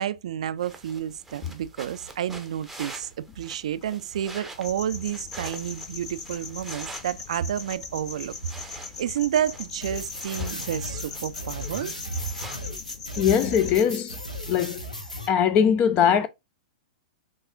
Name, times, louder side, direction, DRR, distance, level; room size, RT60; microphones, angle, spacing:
voice 1, 0.0-12.3, right 10 dB, 60° right, 0.4 m, -30 dB
sound 1, 0.6-12.7, right 2 dB, 5° right, 0.7 m, -45 dB
sound 2, 4.6-13.8, left 5 dB, 55° left, 1.3 m, -40 dB
sound 3, 9.8-15.3, left 1 dB, 85° left, 0.9 m, -36 dB
voice 2, 13.2-14.2 14.5-14.8 15.3-16.3, left 8 dB, 30° left, 0.4 m, -21 dB
6.0 x 2.4 x 2.4 m
figure-of-eight pair, 100°, 4 cm